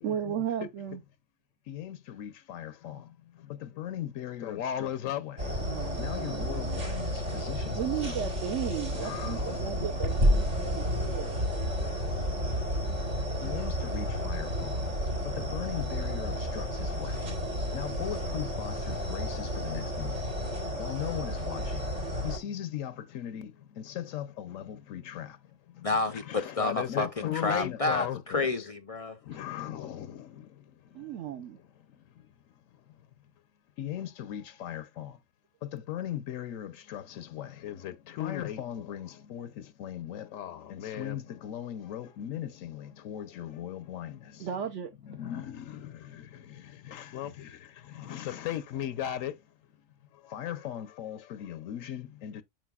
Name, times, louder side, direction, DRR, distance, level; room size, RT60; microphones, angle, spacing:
voice 1, 0.0-1.0 5.6-6.8 7.7-11.4 30.9-31.6 44.4-44.9, right 9 dB, 70° right, 1.1 m, -35 dB
voice 2, 1.7-3.0 3.6-5.4 6.0-7.1 7.4-7.7 8.0-8.1 9.0-9.6 13.4-14.7 15.4-17.1 17.7-20.1 20.8-21.6 22.2-23.5 24.0-25.3 26.3-28.5 29.3-30.1 33.8-35.1 35.7-39.5 39.8-44.1 45.2-45.8 46.9-47.3 48.0-49.3 50.3-52.4, left 11 dB, 85° left, 1.1 m, -37 dB
sound 1, 5.4-22.4, equal, 85° right, 3.8 m, -31 dB
voice 3, 25.8-29.2, left 2 dB, 55° left, 0.4 m, -30 dB
8.8 x 6.3 x 2.3 m
omnidirectional pair, 1.3 m